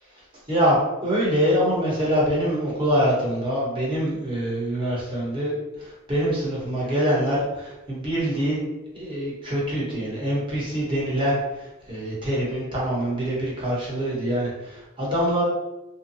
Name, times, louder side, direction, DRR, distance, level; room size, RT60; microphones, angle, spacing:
voice 1, 0.5-8.6 8.9-15.4, equal, 25° right, -7 dB, 1.0 m, -24 dB
2.7 x 2.2 x 2.6 m, 1.0 s
head